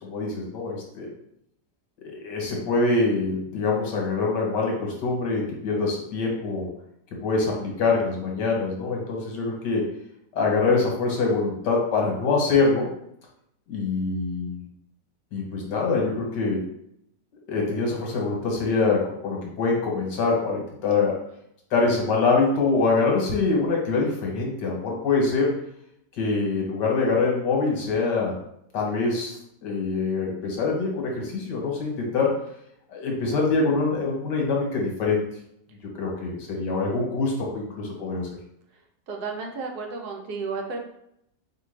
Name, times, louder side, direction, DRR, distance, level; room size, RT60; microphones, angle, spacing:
voice 1, 0.0-1.1 2.1-6.7 7.2-9.8 10.3-12.9 13.7-14.6 15.3-16.6 17.5-21.2 21.7-25.5 26.2-28.3 28.7-29.3 29.6-32.3 32.9-35.2 36.0-38.3, left 4 dB, 85° left, -1 dB, 1.7 m, -24 dB
voice 2, 39.1-40.8, right 4 dB, 70° right, 2 dB, 1.2 m, -32 dB
4.3 x 3.2 x 3.2 m, 0.75 s
omnidirectional pair, 1.8 m